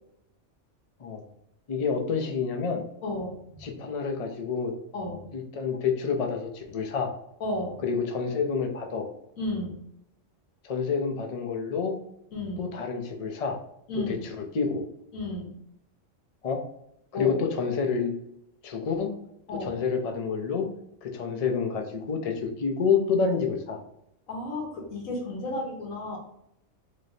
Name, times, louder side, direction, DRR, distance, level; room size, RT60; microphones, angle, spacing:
voice 1, 1.7-2.8 3.6-4.7 5.3-7.1 7.8-9.1 10.6-12.0 12.6-13.6 13.9-14.8 16.4-16.6 17.1-18.1 18.6-19.1 19.5-20.7 21.0-23.8, left 5 dB, 45° left, 3 dB, 0.5 m, -28 dB
voice 2, 3.0-3.6 4.9-5.3 7.4-7.8 9.4-9.8 12.3-12.7 13.9-14.2 15.1-15.5 17.1-17.3 19.5-19.7 24.3-26.2, left 2 dB, 85° left, -1 dB, 1.5 m, -33 dB
3.8 x 3.4 x 2.7 m, 0.76 s
omnidirectional pair, 1.4 m